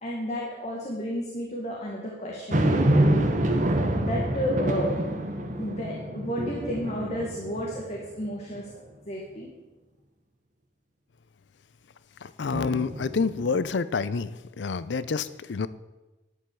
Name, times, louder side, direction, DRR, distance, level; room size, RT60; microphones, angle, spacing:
voice 1, 0.0-3.4 4.0-5.1 5.5-9.5 12.6-12.9, equal, 40° left, -3 dB, 1.8 m, -32 dB
sound 1, 2.5-8.0 8.6-8.7 12.5-13.6, right 1 dB, 45° right, 1.2 m, -26 dB
voice 2, 12.2-14.3 14.6-15.7, left 5 dB, 75° left, 15 dB, 0.5 m, -28 dB
11.0 x 5.5 x 8.3 m, 1.1 s
head